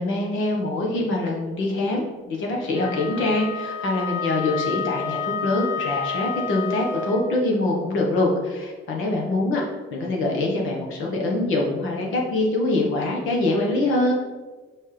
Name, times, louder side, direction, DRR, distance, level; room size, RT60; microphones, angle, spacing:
voice 1, 0.0-9.6 9.9-14.1, left 2 dB, 90° left, -1 dB, 1.4 m, -24 dB
Wind instrument woodwind instrument, 2.7-7.3, left 5 dB, 60° left, 1.9 m, -30 dB
5.9 x 5.2 x 3.4 m, 1.3 s
cardioid pair, 90°, 20 cm